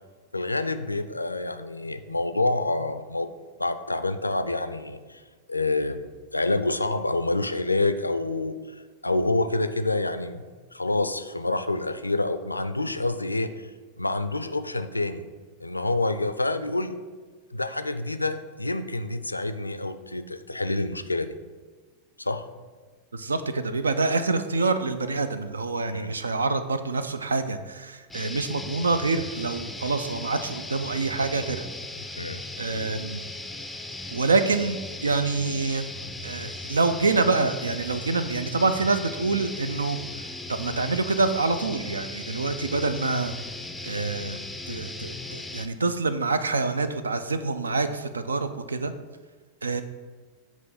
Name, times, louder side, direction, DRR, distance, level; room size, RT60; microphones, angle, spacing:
voice 1, 0.3-3.3 3.6-5.2 5.5-6.0 6.3-8.6 9.0-10.4 10.7-13.7 14.0-15.3 15.6-17.0 17.5-21.3 22.2-22.5 25.9-26.1 32.2-32.4, left 2 dB, 85° left, 10 dB, 0.3 m, -27 dB
voice 2, 23.1-31.7 32.6-33.2 34.1-35.8 36.2-43.3 43.8-48.9 49.6-49.8, right 3 dB, 75° right, 11 dB, 0.4 m, -26 dB
sound 1, 28.1-45.7, left 2 dB, 5° left, 0.5 m, -37 dB
7.5 x 3.0 x 5.7 m, 1.4 s
figure-of-eight pair, 90°, 0 cm